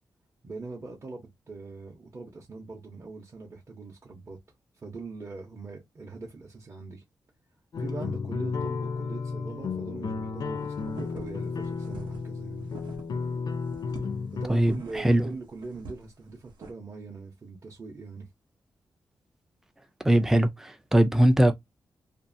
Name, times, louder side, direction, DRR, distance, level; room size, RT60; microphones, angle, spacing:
voice 1, 0.4-4.4 4.8-7.0 7.8-12.7 14.4-18.3, right 3 dB, 35° right, 0.7 m, -42 dB
sound 1, 7.7-14.5, left 4 dB, 55° left, 0.4 m, -33 dB
sound 2, 10.6-13.3 13.6-16.7, right 3 dB, 85° right, 0.7 m, -46 dB
voice 2, 14.5-15.2 20.0-21.6, right 1 dB, 5° right, 0.3 m, -21 dB
2.6 x 2.3 x 2.5 m
wide cardioid pair, 130°, 8 cm